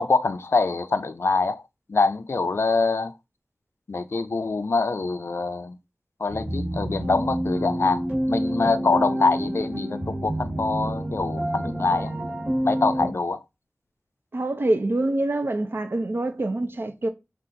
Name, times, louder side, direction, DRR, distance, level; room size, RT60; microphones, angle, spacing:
voice 1, 0.0-1.6 1.9-3.1 3.9-5.8 6.2-12.1 12.6-13.4, left 3 dB, 70° left, 0.4 m, -24 dB
sound 1, 6.3-13.1, right 1 dB, 35° right, 1.5 m, -28 dB
voice 2, 14.3-17.1, right 2 dB, 60° right, 0.5 m, -25 dB
3.9 x 2.4 x 3.7 m
wide cardioid pair, 60°, 4 cm